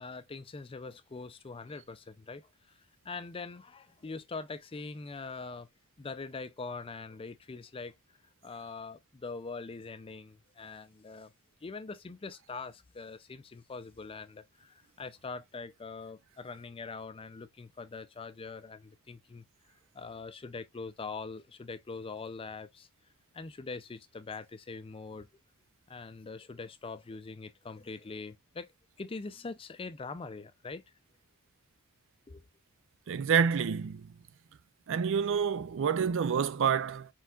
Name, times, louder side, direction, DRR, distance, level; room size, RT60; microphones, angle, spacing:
voice 1, 0.0-2.4 3.0-5.7 6.0-7.9 8.4-11.3 11.6-19.4 19.9-22.9 23.3-25.3 25.9-28.7 29.0-30.8 32.3-32.4, left 4 dB, 25° left, 0.4 m, -43 dB
voice 2, 33.1-34.0 34.9-37.1, right 7 dB, 60° right, 0.4 m, -28 dB
4.6 x 4.4 x 2.3 m
head